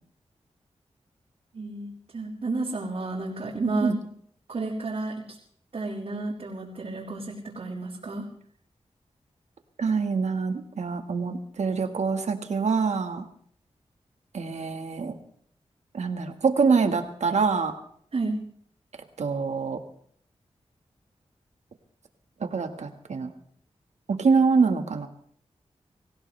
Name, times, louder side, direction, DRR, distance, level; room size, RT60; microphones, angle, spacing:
voice 1, 1.5-4.0 4.5-5.4 5.7-8.3 18.1-18.4, right 3 dB, 65° right, -8 dB, 4.4 m, -31 dB
voice 2, 9.8-13.2 14.3-15.1 15.9-17.7 19.2-19.8 22.4-23.3 24.2-25.1, right 5 dB, 85° right, 7 dB, 1.7 m, -25 dB
24.5 x 16.0 x 3.4 m, 0.63 s
wide cardioid pair, 70°, 11 cm